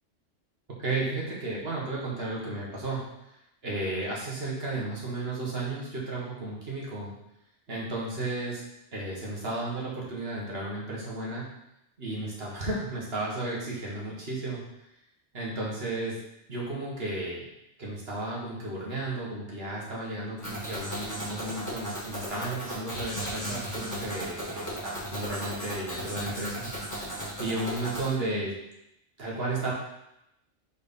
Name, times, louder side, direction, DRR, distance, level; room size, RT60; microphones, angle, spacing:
voice 1, 0.8-3.1 3.6-7.1 7.7-8.6 8.9-11.5 12.0-14.6 15.3-16.2 16.5-17.5 17.8-26.7 27.4-28.5 29.2-29.7, right 2 dB, 55° right, -4 dB, 1.6 m, -33 dB
sound 1, 20.4-28.1, equal, 15° left, 1.7 m, -36 dB
4.7 x 4.1 x 5.3 m, 0.82 s
omnidirectional pair, 1.3 m